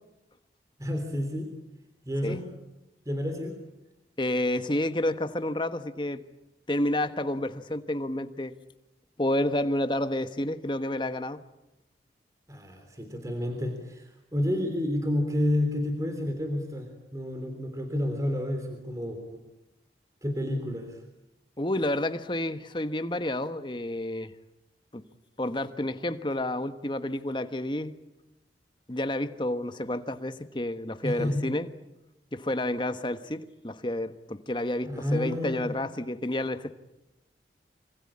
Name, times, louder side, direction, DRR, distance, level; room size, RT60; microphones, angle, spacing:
voice 1, 0.8-1.5 2.1-2.4 3.1-3.6 12.5-19.4 20.2-21.0 31.0-31.5 34.8-35.7, left 1 dB, 20° right, 5 dB, 3.5 m, -30 dB
voice 2, 4.2-6.2 6.7-8.6 9.2-11.4 21.6-24.3 24.9-25.0 25.4-27.9 28.9-31.7 32.3-36.7, left 1 dB, 25° left, 10 dB, 1.3 m, -30 dB
26.0 x 26.0 x 8.8 m, 0.93 s
head